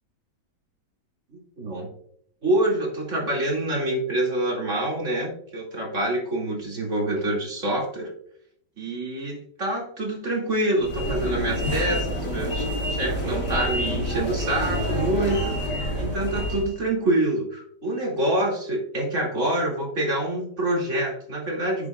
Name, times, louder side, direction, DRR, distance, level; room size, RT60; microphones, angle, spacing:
voice 1, 1.3-1.9 2.4-8.1 8.8-21.9, right 1 dB, 45° right, -1 dB, 2.7 m, -26 dB
sound 1, 10.8-16.7, equal, 55° left, 2.5 m, -27 dB
11.0 x 8.5 x 2.4 m, 0.66 s
omnidirectional pair, 1.9 m